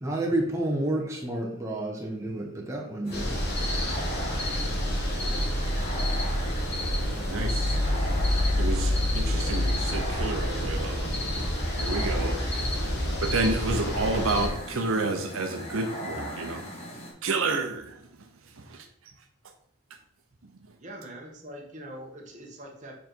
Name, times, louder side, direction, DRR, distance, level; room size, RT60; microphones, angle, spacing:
voice 1, 0.0-3.3, right 1 dB, 15° right, -1 dB, 0.8 m, -30 dB
sound 1, 3.0-17.1, equal, 25° left, 1.6 m, -39 dB
sound 2, 3.1-14.5, left 1 dB, 50° left, 1.5 m, -28 dB
voice 2, 7.0-12.4 13.2-16.7 17.2-18.0 18.7-18.9, right 3 dB, 70° right, 5 dB, 0.7 m, -30 dB
voice 3, 20.8-22.9, right 1 dB, 35° right, 0 dB, 1.3 m, -43 dB
7.3 x 4.0 x 4.5 m, 0.73 s
head